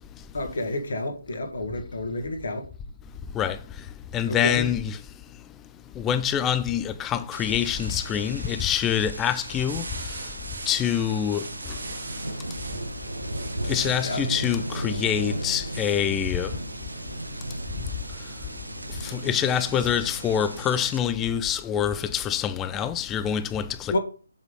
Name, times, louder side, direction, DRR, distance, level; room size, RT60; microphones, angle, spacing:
voice 1, 0.3-2.7 4.3-4.7 14.0-14.3 23.9-24.0, left 1 dB, 55° left, 1.7 m, -29 dB
voice 2, 4.1-5.0 6.0-9.8 10.7-11.4 13.7-16.5 19.1-24.0, left 9 dB, 10° left, 0.4 m, -25 dB
sound 1, 7.3-21.0, right 1 dB, 75° right, 1.1 m, -35 dB
sound 2, 9.7-12.8 13.3-14.3 15.7-16.1, right 3 dB, 50° right, 2.0 m, -40 dB
7.1 x 4.8 x 5.4 m
figure-of-eight pair, 145°, 0 cm